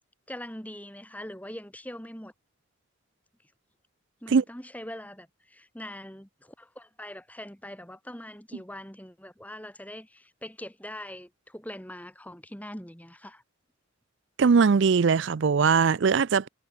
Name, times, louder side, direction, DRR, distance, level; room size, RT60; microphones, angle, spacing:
voice 1, 0.3-2.3 4.2-13.4, left 1 dB, 5° left, 2.4 m, -42 dB
voice 2, 14.4-16.5, right 5 dB, 60° right, 0.4 m, -21 dB
head